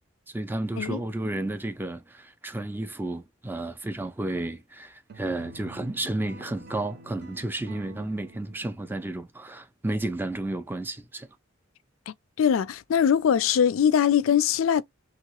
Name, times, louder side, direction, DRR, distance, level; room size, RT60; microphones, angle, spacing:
voice 1, 0.3-11.3, right 2 dB, 10° right, 0.3 m, -32 dB
sound 1, 5.1-9.2, right 3 dB, 50° right, 0.7 m, -48 dB
voice 2, 12.1-14.8, left 8 dB, 75° left, 0.4 m, -22 dB
2.9 x 2.8 x 2.9 m
head